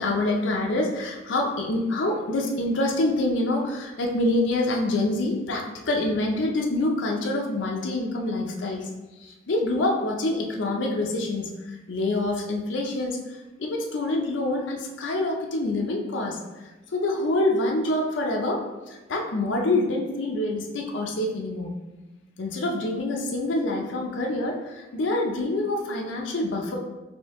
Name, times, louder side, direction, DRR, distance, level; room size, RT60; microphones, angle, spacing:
voice 1, 0.0-8.9 9.2-16.4 16.9-21.7 22.4-26.8, left 2 dB, 75° left, 0 dB, 0.5 m, -26 dB
4.4 x 2.7 x 3.5 m, 1.1 s
head